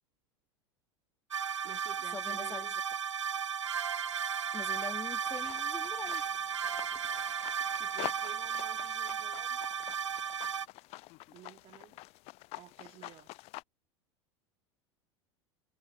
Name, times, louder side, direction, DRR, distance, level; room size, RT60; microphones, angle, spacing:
sound 1, 1.3-10.7, right 7 dB, 75° right, 0.8 m, -35 dB
voice 1, 1.4-2.8 7.8-9.6 11.3-12.0 12.5-13.3, right 14 dB, 35° right, 3.0 m, -52 dB
voice 2, 2.1-2.7 4.5-6.3, left 5 dB, 15° left, 2.6 m, -43 dB
sound 2, 5.3-13.6, left 23 dB, 40° left, 0.8 m, -47 dB
figure-of-eight pair, 80°, 16 cm